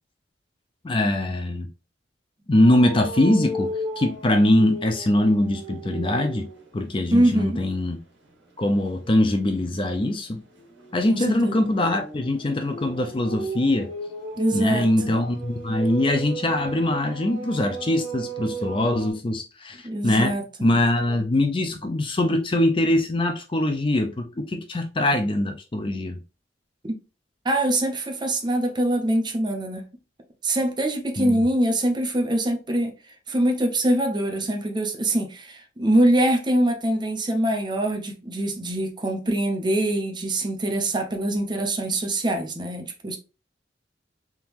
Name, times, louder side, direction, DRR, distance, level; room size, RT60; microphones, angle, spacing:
voice 1, 0.8-1.7 2.5-3.7 4.0-6.5 6.7-8.0 8.6-10.4 10.9-13.9 14.5-26.2 31.2-31.4, left 1 dB, 30° left, 0.5 m, -22 dB
sound 1, 2.5-6.7 7.1-7.4 9.9-19.1, right 2 dB, 80° right, 1.6 m, -35 dB
voice 2, 7.1-7.6 11.1-11.7 14.4-15.2 19.8-20.7 26.8-26.9 27.4-29.8 30.4-32.9 33.3-43.2, right 1 dB, 25° right, 0.6 m, -24 dB
3.6 x 2.9 x 2.9 m
head